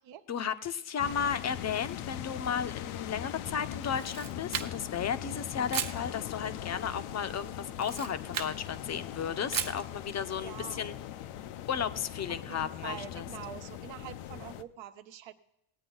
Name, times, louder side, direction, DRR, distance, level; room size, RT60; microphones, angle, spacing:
voice 1, 0.3-11.0 11.7-13.3, left 7 dB, 35° left, 12 dB, 0.7 m, -34 dB
sound 1, 1.0-14.6, left 11 dB, 80° left, 0.8 m, -40 dB
Camera, 3.8-5.0 5.7-6.0 7.7-8.6 9.5-9.9, right 8 dB, 40° right, 1.0 m, -35 dB
voice 2, 10.4-10.8 12.3-15.3, right 11 dB, 65° right, 9 dB, 1.1 m, -45 dB
18.5 x 8.9 x 3.9 m, 0.84 s
cardioid pair, 115°, 49 cm